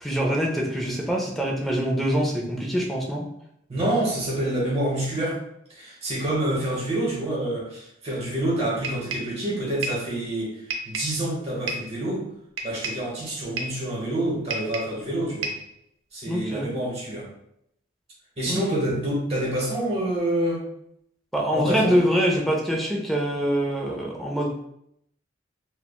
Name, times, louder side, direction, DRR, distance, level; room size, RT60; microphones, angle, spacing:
voice 1, 0.0-3.3 16.3-16.7 18.5-18.6 21.3-24.5, equal, ahead, -2 dB, 0.4 m, -24 dB
voice 2, 3.7-5.4 5.7-12.2 12.6-15.5 16.1-17.3 18.4-20.6 21.5-22.0, right 1 dB, 30° right, -4 dB, 0.9 m, -27 dB
sound 1, 8.8-9.4 9.8-10.1 10.7-11.2 11.7-12.0 12.6-13.1 13.6-13.8 14.5-15.0 15.4-15.7, right 2 dB, 80° right, 0.4 m, -31 dB
3.1 x 2.1 x 2.2 m, 0.75 s
head